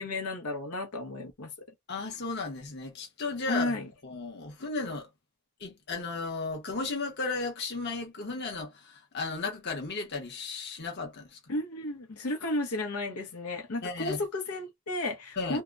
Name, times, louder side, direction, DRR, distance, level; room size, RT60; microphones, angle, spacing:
voice 1, 0.0-1.5 3.5-3.9 11.5-15.6, left 2 dB, 90° left, 0.8 m, -33 dB
voice 2, 1.9-5.1 5.6-11.4 13.8-14.2 15.4-15.6, left 3 dB, 50° left, 0.9 m, -35 dB
2.8 x 2.1 x 2.4 m
head